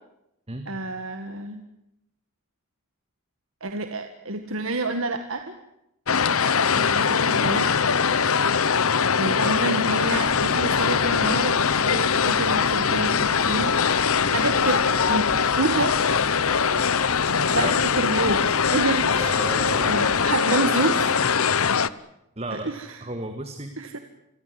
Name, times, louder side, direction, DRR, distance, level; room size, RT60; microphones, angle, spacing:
voice 1, 0.7-1.6 3.6-5.5 6.7-7.7 9.2-14.8 15.1-15.3 15.6-16.0 17.5-18.4 18.7-19.3 19.9-21.1 22.5-23.0 23.8-24.0, right 2 dB, 65° right, 7 dB, 1.9 m, -28 dB
sound 1, 6.1-21.9, left 6 dB, 75° left, 1.0 m, -22 dB
voice 2, 6.9-7.3 17.5-17.8 19.2-20.0 22.4-22.7 23.0-23.7, right 1 dB, 30° right, 7 dB, 2.1 m, -33 dB
sound 2, 10.0-20.4, left 1 dB, 40° left, 2.2 m, -41 dB
28.5 x 22.0 x 7.8 m, 0.82 s
head